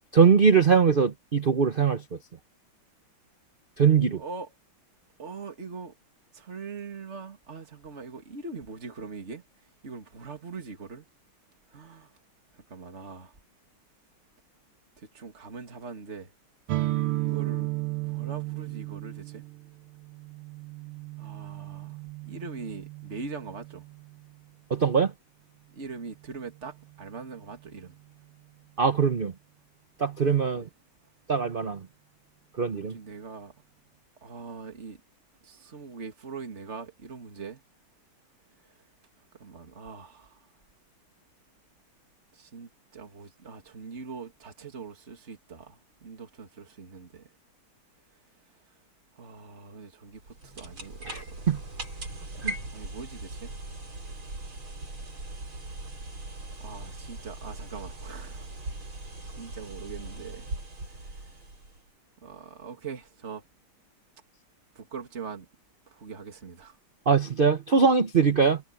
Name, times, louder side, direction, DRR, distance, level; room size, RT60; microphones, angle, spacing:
voice 1, 0.1-2.2 3.8-4.2 24.7-25.1 28.8-29.3 30.0-30.7 31.3-31.9 32.6-33.0 51.1-51.6 52.4-52.6 67.1-68.6, right 6 dB, 55° right, 0.6 m, -22 dB
voice 2, 4.2-4.5 5.2-5.9 6.3-9.4 9.8-11.0 11.7-12.1 12.7-13.3 15.0-16.3 17.1-17.7 18.0-19.4 21.2-23.8 25.8-27.9 30.5-30.7 32.7-33.5 34.2-35.0 35.4-37.6 39.4-40.4 42.3-47.3 49.2-51.3 52.7-53.5 56.6-58.5 59.2-60.5 62.2-63.4 64.7-65.5 65.9-66.8, right 4 dB, 35° right, 2.7 m, -42 dB
sound 1, 16.7-24.3, right 18 dB, 90° right, 1.7 m, -34 dB
sound 2, 50.1-61.9, right 2 dB, 70° right, 7.3 m, -40 dB
omnidirectional pair, 2.3 m